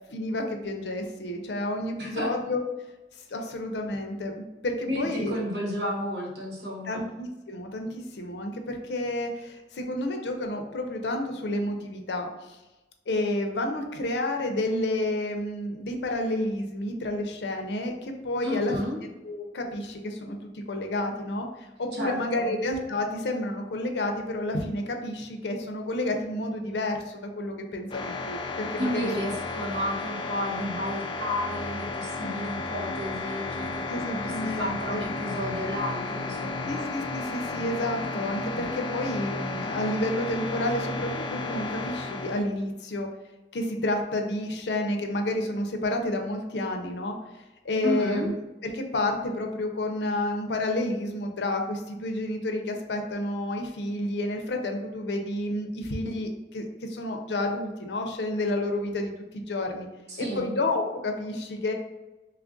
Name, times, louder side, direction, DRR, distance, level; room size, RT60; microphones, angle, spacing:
voice 1, 0.1-2.6 3.3-5.4 6.9-12.6 13.1-18.8 19.2-29.1 33.9-35.0 36.6-43.1 43.5-47.1 47.6-48.3 48.6-59.9 60.2-61.7, left 1 dB, 75° left, 4 dB, 0.6 m, -30 dB
voice 2, 2.0-2.3 3.5-3.6 4.9-7.0 18.4-19.0 21.9-22.5 28.8-36.8 47.8-48.3 60.1-60.5, equal, 70° right, -2 dB, 1.0 m, -32 dB
sound 1, 27.9-42.4, left 3 dB, 30° left, 0.3 m, -33 dB
3.2 x 2.5 x 3.7 m, 1.1 s
head